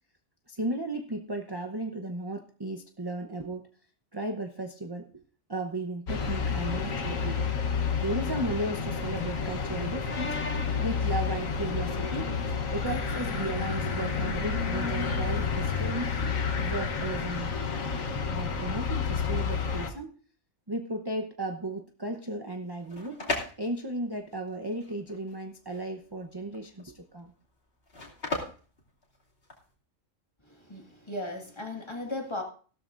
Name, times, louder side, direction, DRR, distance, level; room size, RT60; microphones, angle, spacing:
voice 1, 0.5-3.6 4.1-5.1 5.5-7.5 8.0-12.3 12.7-16.1 16.6-17.7 18.3-20.1 20.7-23.2 23.6-27.3, right 1 dB, 20° right, 4 dB, 0.8 m, -35 dB
sound 1, 6.1-19.9, left 5 dB, 85° left, 1.6 m, -30 dB
sound 2, 22.6-29.7, left 2 dB, 50° left, 2.9 m, -38 dB
voice 2, 30.7-32.4, left 1 dB, 20° left, 1 dB, 2.0 m, -36 dB
16.0 x 13.0 x 2.6 m, 0.41 s
omnidirectional pair, 1.3 m